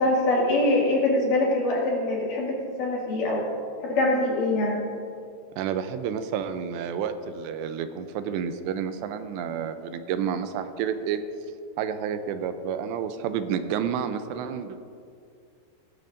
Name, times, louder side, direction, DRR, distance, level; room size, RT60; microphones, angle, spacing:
voice 1, 0.0-3.5 4.0-4.8, left 2 dB, 55° left, -4 dB, 3.4 m, -23 dB
voice 2, 5.6-11.2 11.8-14.8, right 8 dB, 85° right, 9 dB, 2.8 m, -30 dB
18.0 x 14.5 x 2.6 m, 2.4 s
omnidirectional pair, 5.0 m